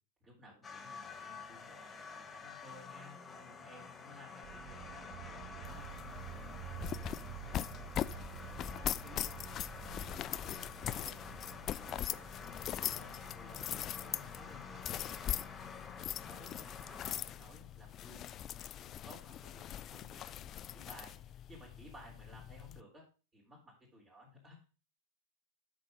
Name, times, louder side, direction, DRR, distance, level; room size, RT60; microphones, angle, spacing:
voice 1, 0.2-6.6 6.8-10.1 10.4-11.2 11.6-15.8 16.2-18.3 19.0-23.0 23.3-24.6, equal, 20° right, -5 dB, 4.0 m, -58 dB
sound 1, 0.6-19.4, left 5 dB, 15° left, 1.3 m, -50 dB
sound 2, 4.4-16.4, right 16 dB, 40° right, 0.5 m, -51 dB
sound 3, 5.6-22.8, left 11 dB, 30° left, 0.3 m, -41 dB
8.3 x 6.4 x 5.2 m, 0.34 s
figure-of-eight pair, 90°, 0 cm